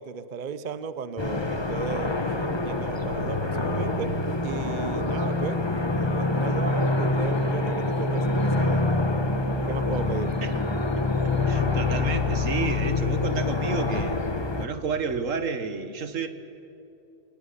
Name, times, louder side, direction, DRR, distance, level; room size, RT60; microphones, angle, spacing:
voice 1, 0.0-2.1 2.6-4.2 4.4-5.6 6.0-9.0 9.7-10.4, right 6 dB, 40° right, 13 dB, 0.9 m, -35 dB
sound 1, 1.2-14.7, left 2 dB, 20° left, 1.3 m, -26 dB
voice 2, 11.0-14.2 14.6-16.3, right 5 dB, 75° right, 10 dB, 1.7 m, -31 dB
24.5 x 19.0 x 9.9 m, 2.8 s
omnidirectional pair, 1.4 m